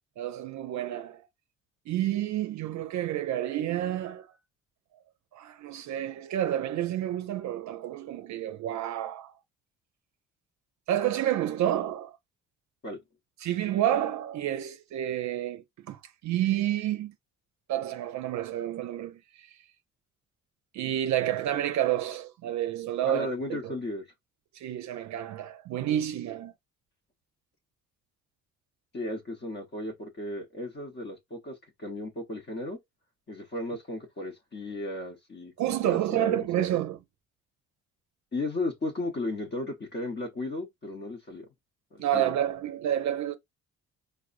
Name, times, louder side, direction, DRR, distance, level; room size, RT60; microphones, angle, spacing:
voice 1, 0.2-1.2 1.9-4.3 5.3-9.3 10.9-12.2 13.4-17.1 17.7-19.6 20.7-23.8 24.5-26.5 35.6-37.0 42.0-43.3, right 12 dB, 70° right, 0.5 m, -29 dB
voice 2, 23.1-24.1 28.9-32.8 33.3-36.6 38.3-41.5 41.9-42.3, left 2 dB, 35° left, 0.8 m, -35 dB
4.6 x 2.1 x 2.4 m
cardioid pair, 90°, 30 cm